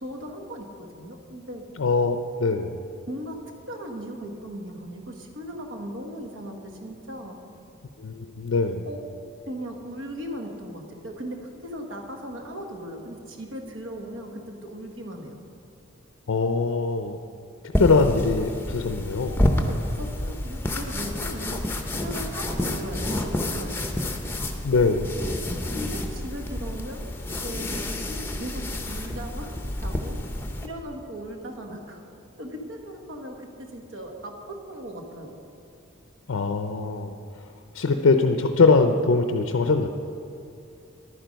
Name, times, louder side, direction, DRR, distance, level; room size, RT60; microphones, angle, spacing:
voice 1, 0.0-1.6 3.1-3.4 3.7-7.4 8.9-9.0 9.5-15.4 19.7-23.9 25.7-30.2 30.6-32.0 32.4-35.4, equal, 65° right, 3 dB, 1.3 m, -38 dB
voice 2, 1.8-2.8 8.0-8.9 16.3-17.2 17.8-19.4 24.6-25.1 36.3-37.1 37.7-39.9, left 4 dB, 80° left, 6 dB, 0.5 m, -22 dB
sound 1, 17.7-30.7, left 1 dB, 10° left, 0.6 m, -29 dB
11.5 x 9.1 x 5.2 m, 2.6 s
head